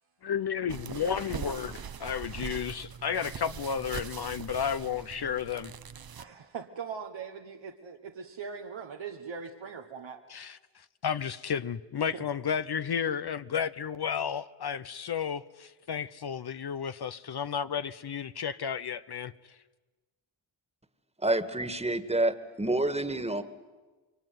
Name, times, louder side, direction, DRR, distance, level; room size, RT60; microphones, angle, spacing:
voice 1, 0.2-5.7 10.3-19.3, left 7 dB, 60° left, 0.8 m, -32 dB
sound 1, 0.7-6.2, right 8 dB, 55° right, 0.8 m, -41 dB
voice 2, 6.2-10.2 12.1-12.3, right 6 dB, 85° right, 1.3 m, -41 dB
voice 3, 21.2-23.4, right 2 dB, 15° right, 1.8 m, -28 dB
27.5 x 23.0 x 9.4 m
cardioid pair, 50°, 44 cm